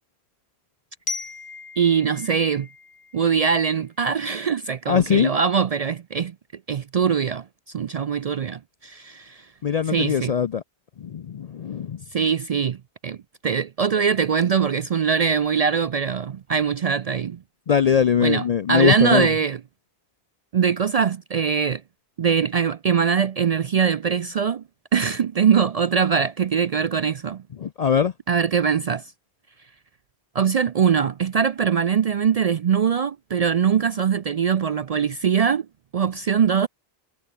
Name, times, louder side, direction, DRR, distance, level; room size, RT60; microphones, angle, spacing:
Glockenspiel, 1.1-3.9, left 4 dB, 70° left, 2.2 m, -37 dB
voice 1, 1.8-2.7 3.1-6.3 6.7-7.4 7.7-9.5 9.9-10.3 12.1-12.8 13.0-13.2 13.4-17.4 18.2-19.6 20.5-21.8 22.2-24.6 24.9-27.4 28.3-29.1 30.3-35.7 35.9-36.7, right 7 dB, 55° right, 0.4 m, -22 dB
voice 2, 4.9-5.3 9.6-10.6 11.0-12.0 17.7-19.3 27.6-28.1, left 8 dB, 50° left, 0.5 m, -21 dB
omnidirectional pair, 1.1 m